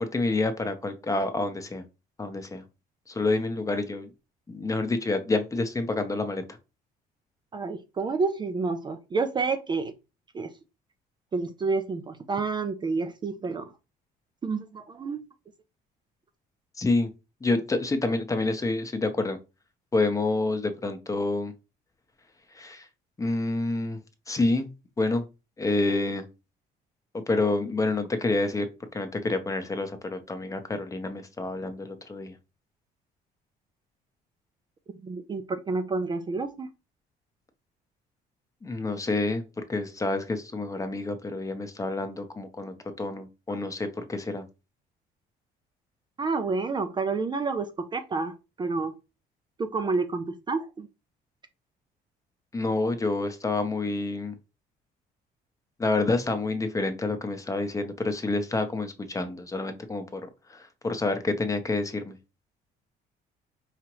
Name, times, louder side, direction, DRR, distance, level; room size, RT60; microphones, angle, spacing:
voice 1, 0.0-1.8 2.2-2.6 3.1-4.1 4.5-6.4 16.8-17.1 17.4-19.4 19.9-21.5 22.5-22.9 23.2-24.0 24.3-24.7 25.0-25.2 25.6-26.3 27.1-28.7 28.9-32.3 38.6-39.4 39.7-44.4 52.5-54.4 55.8-60.2 60.5-62.2, left 2 dB, 20° left, 0.8 m, -28 dB
voice 2, 7.5-9.9 10.3-10.5 11.3-13.7 14.4-15.2 35.0-36.7 46.2-48.9 49.6-50.9, right 4 dB, 25° right, 0.5 m, -29 dB
4.8 x 2.9 x 3.0 m
cardioid pair, 110°, 17 cm